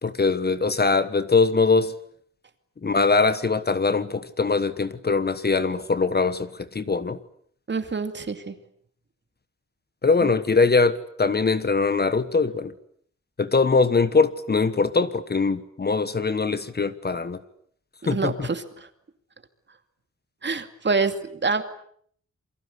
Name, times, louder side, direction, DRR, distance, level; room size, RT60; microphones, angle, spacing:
voice 1, 0.0-1.9 2.8-7.2 10.0-12.7 13.4-17.4 18.1-18.5, left 4 dB, 35° left, 13 dB, 1.3 m, -22 dB
voice 2, 7.7-8.5 10.2-10.3 18.1-18.9 20.4-21.6, right 4 dB, 40° right, 8 dB, 2.5 m, -26 dB
28.0 x 24.0 x 8.3 m, 0.63 s
wide cardioid pair, 155°, 29 cm